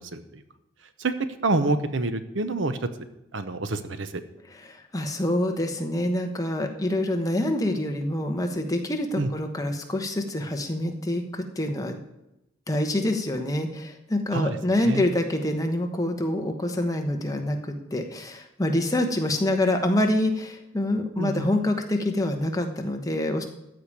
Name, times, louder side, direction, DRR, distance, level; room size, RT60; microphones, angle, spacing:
voice 1, 0.1-0.4 1.0-1.1 1.4-2.9 3.3-4.2 9.2-9.3 14.3-15.1 21.2-21.5, right 2 dB, 75° right, 10 dB, 0.9 m, -27 dB
voice 2, 4.6-12.0 12.7-23.5, left 1 dB, 15° left, 4 dB, 1.1 m, -26 dB
14.0 x 5.0 x 8.5 m, 0.89 s
head